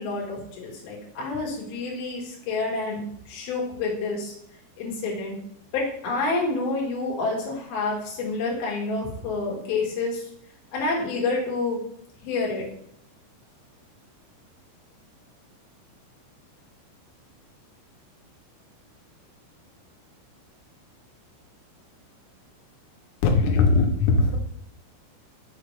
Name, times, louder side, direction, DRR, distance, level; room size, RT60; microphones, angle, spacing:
voice 1, 0.0-3.0 3.3-4.3 4.8-5.4 5.7-10.2 10.7-11.8 12.2-12.6, left 3 dB, 65° left, -2 dB, 3.0 m, -28 dB
voice 2, 23.2-24.4, left 4 dB, 85° left, 2 dB, 3.3 m, -20 dB
6.6 x 6.0 x 3.2 m, 0.69 s
omnidirectional pair, 5.4 m